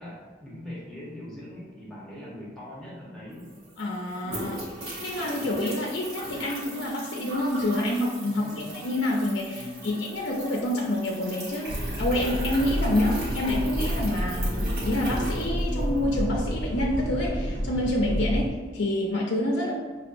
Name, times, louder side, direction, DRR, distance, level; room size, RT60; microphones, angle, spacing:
voice 1, 0.0-3.5 8.2-8.8 9.5-9.9, left 1 dB, 5° left, -7 dB, 0.9 m, -41 dB
sound 1, 3.1-3.2 3.3-16.1, right 1 dB, 55° right, 1.0 m, -38 dB
voice 2, 3.8-4.7 5.0-19.7, left 1 dB, 75° left, -2 dB, 0.5 m, -27 dB
sound 2, 11.7-18.5, equal, 85° right, 0.6 m, -29 dB
5.3 x 2.3 x 2.5 m, 1.4 s
head